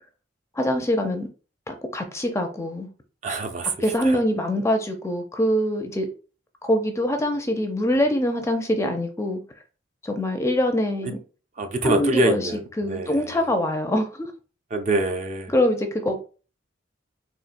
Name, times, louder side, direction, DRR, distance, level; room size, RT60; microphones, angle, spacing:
voice 1, 0.6-1.3 1.7-2.9 3.8-6.1 6.6-9.4 10.0-11.2 11.8-12.5 12.8-14.3 15.5-16.2, left 1 dB, 15° left, 0.4 m, -24 dB
voice 2, 3.2-3.7 4.0-4.2 11.6-12.6 12.9-13.2 14.7-15.5, right 2 dB, 40° right, 0.5 m, -24 dB
4.1 x 2.4 x 2.5 m
head